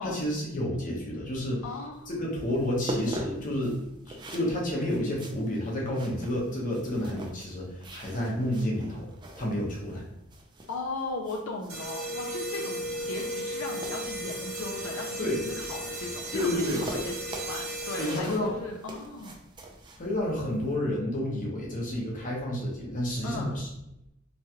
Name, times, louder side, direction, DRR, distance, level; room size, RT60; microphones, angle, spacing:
voice 1, 0.0-1.6 2.1-3.8 4.1-9.1 9.4-10.0 15.2-15.4 16.3-16.8 18.0-18.5 20.0-23.7, left 1 dB, 40° left, -3 dB, 0.9 m, -30 dB
voice 2, 1.6-2.1 10.7-19.4 23.2-23.6, left 3 dB, 80° left, 1 dB, 0.4 m, -37 dB
sound 1, 1.9-20.8, right 1 dB, 20° right, 0.4 m, -43 dB
sound 2, 11.7-18.5, right 1 dB, 70° right, 0.8 m, -35 dB
3.0 x 2.3 x 2.8 m, 0.83 s
head